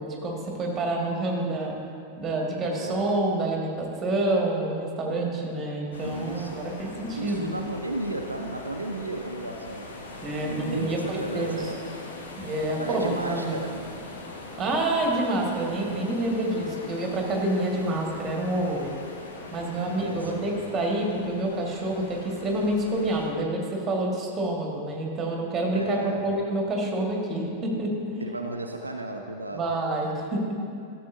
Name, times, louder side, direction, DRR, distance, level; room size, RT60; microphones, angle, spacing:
voice 1, 0.0-1.8 2.2-7.5 10.2-11.7 12.4-13.6 14.6-18.9 19.5-28.2 29.5-30.6, right 1 dB, 20° right, 0 dB, 1.5 m, -28 dB
voice 2, 2.6-3.1 6.0-6.7 7.2-10.0 10.4-12.0 12.7-14.0 19.7-20.6 25.7-26.3 28.2-29.8, right 2 dB, 80° right, 3 dB, 0.4 m, -34 dB
sound 1, 5.9-23.3, left 2 dB, 70° left, 1.0 m, -41 dB
12.5 x 7.0 x 2.6 m, 2.4 s
figure-of-eight pair, 90°, 0 cm